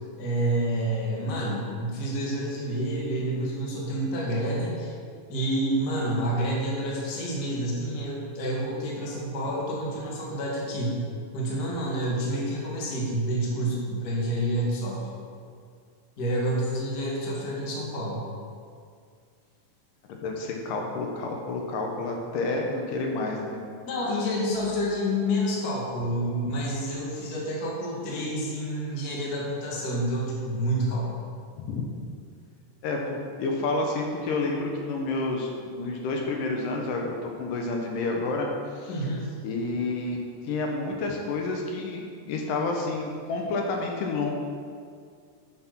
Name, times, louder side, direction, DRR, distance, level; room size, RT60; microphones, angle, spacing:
voice 1, 0.2-4.9 5.3-11.0 11.3-15.2 16.2-18.2 23.8-31.1 38.9-39.3, right 1 dB, 40° left, -4 dB, 1.7 m, -28 dB
voice 2, 20.1-23.6 31.6-31.8 32.8-38.5 38.8-39.0 39.4-44.3, left 3 dB, 80° left, 1 dB, 2.6 m, -29 dB
7.5 x 6.8 x 5.9 m, 2.1 s
omnidirectional pair, 3.8 m